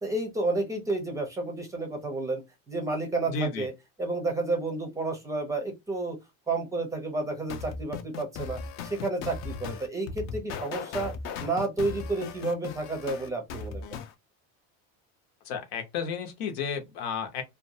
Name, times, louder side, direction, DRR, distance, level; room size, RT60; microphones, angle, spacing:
voice 1, 0.0-2.4 2.7-3.7 4.0-6.2 6.5-11.1 11.4-13.8, right 2 dB, 10° right, 0.5 m, -31 dB
voice 2, 3.3-3.7 15.5-17.4, left 5 dB, 90° left, 0.9 m, -32 dB
sound 1, 7.5-14.1, left 5 dB, 45° left, 0.4 m, -37 dB
2.5 x 2.2 x 2.7 m
cardioid pair, 165°, 32 cm